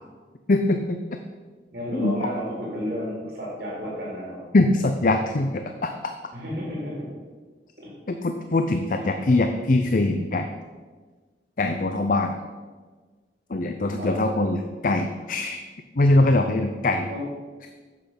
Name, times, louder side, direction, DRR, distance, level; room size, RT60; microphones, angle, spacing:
voice 1, 0.5-1.0 1.9-2.2 4.5-6.1 8.1-10.5 11.6-12.4 13.5-15.6 15.9-17.1, left 2 dB, 50° left, 6 dB, 0.6 m, -22 dB
voice 2, 1.7-4.4 6.3-7.1 7.8-7.9 9.0-9.3 14.0-14.1 17.1-17.2, equal, 60° right, -4 dB, 3.8 m, -32 dB
10.5 x 7.6 x 5.9 m, 1.4 s
head